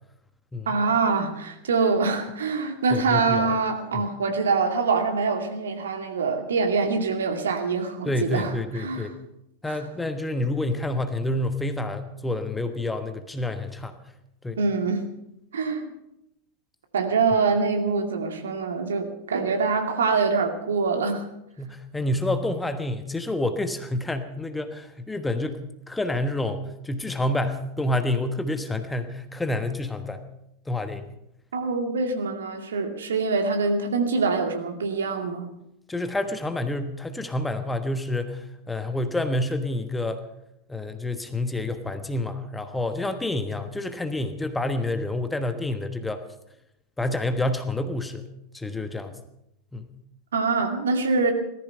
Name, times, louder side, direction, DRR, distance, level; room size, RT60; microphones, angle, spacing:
voice 1, 0.7-9.1 9.7-9.8 14.6-15.0 15.5-15.9 16.9-21.2 31.5-35.5 50.3-51.3, right 4 dB, 65° right, 4 dB, 2.4 m, -24 dB
voice 2, 2.9-3.6 3.9-4.0 8.0-9.1 9.6-14.0 14.4-14.6 21.6-25.6 25.9-30.2 30.7-31.0 35.9-40.2 40.7-46.2 47.0-48.3 48.5-49.1 49.7-49.9, left 1 dB, 10° left, 9 dB, 1.3 m, -28 dB
18.0 x 14.5 x 5.5 m, 0.82 s
figure-of-eight pair, 90°, 0 cm